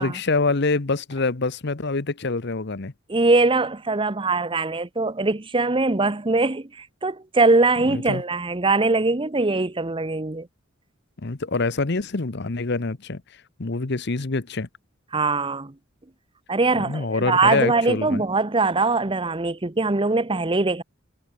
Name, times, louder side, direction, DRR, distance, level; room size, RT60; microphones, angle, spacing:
voice 1, 0.0-2.9 7.9-8.2 11.2-13.2 13.6-14.7 16.7-18.2, left 3 dB, 55° left, 1.0 m, -25 dB
voice 2, 3.1-10.5 15.1-15.7 16.5-20.8, right 3 dB, 25° right, 0.9 m, -22 dB
head